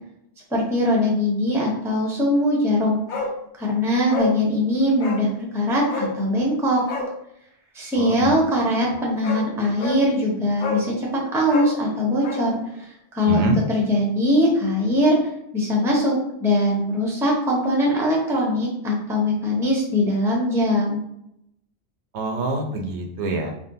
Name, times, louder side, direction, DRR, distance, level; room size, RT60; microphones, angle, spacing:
voice 1, 0.5-3.0 3.6-6.8 7.7-13.4 13.7-15.2 15.5-21.0, left 1 dB, 5° right, -3 dB, 0.5 m, -21 dB
Bark, 3.1-3.4 3.7-3.8 4.1-4.4 5.0-5.3 5.9-6.2 6.8-7.1 8.7-8.8 9.2-9.5 9.8-10.0 10.6-10.9 11.4-12.5 12.8-12.9, left 3 dB, 60° left, 0.6 m, -28 dB
voice 2, 8.0-8.3 13.3-13.6 22.1-23.5, right 2 dB, 80° right, 3 dB, 0.9 m, -24 dB
3.5 x 2.1 x 2.6 m, 0.76 s
omnidirectional pair, 1.2 m